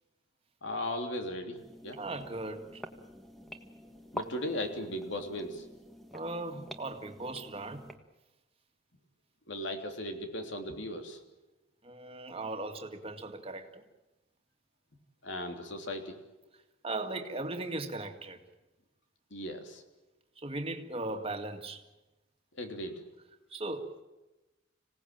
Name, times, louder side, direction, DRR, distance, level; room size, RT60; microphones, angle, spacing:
voice 1, 0.6-2.0 4.1-5.6 9.5-11.2 15.2-16.2 19.3-19.8 22.6-23.0, left 1 dB, 65° left, 5 dB, 3.3 m, -37 dB
sound 1, 1.5-8.0, equal, ahead, 1.6 m, -47 dB
voice 2, 1.9-2.8 6.1-7.9 11.8-13.8 16.8-18.4 20.4-21.8 23.5-24.0, right 2 dB, 30° right, 5 dB, 2.1 m, -38 dB
26.0 x 18.0 x 9.0 m, 1.0 s
head